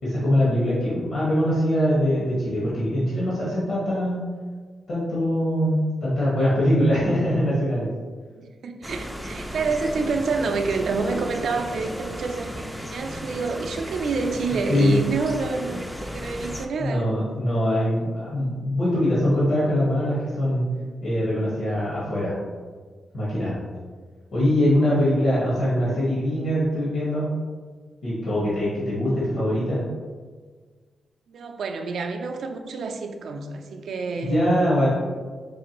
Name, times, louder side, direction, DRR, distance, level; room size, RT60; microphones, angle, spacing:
voice 1, 0.0-4.2 4.9-7.9 14.7-15.0 16.8-20.7 21.0-22.3 23.1-23.6 24.3-27.2 28.0-29.8 34.2-34.9, equal, 70° left, -9 dB, 1.4 m, -22 dB
voice 2, 8.3-17.1 31.3-34.5, right 4 dB, 70° right, 5 dB, 0.4 m, -28 dB
sound 1, 8.8-16.7, equal, ahead, 0.3 m, -35 dB
4.6 x 2.5 x 2.9 m, 1.5 s
cardioid pair, 110°, 0 cm